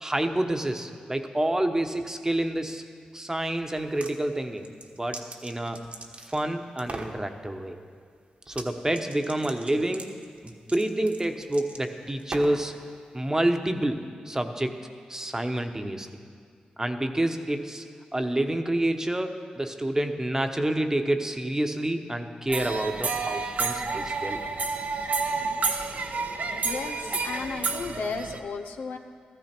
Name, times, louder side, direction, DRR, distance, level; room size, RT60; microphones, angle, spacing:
voice 1, 0.0-2.8 3.1-4.7 5.0-5.8 6.2-7.8 8.5-10.1 10.4-12.8 13.1-16.1 16.8-17.8 18.1-24.4, right 1 dB, 20° right, 6 dB, 1.0 m, -28 dB
sound 1, 3.8-4.2 4.6-6.5 6.8-7.2 8.5-8.7 8.9-12.7, right 2 dB, 50° right, 1.3 m, -40 dB
sound 2, 22.5-28.4, right 4 dB, 65° right, 0.9 m, -30 dB
voice 2, 26.6-29.0, left 5 dB, 90° left, 5 dB, 0.7 m, -34 dB
14.0 x 14.0 x 4.5 m, 2.1 s
cardioid pair, 50°, 3 cm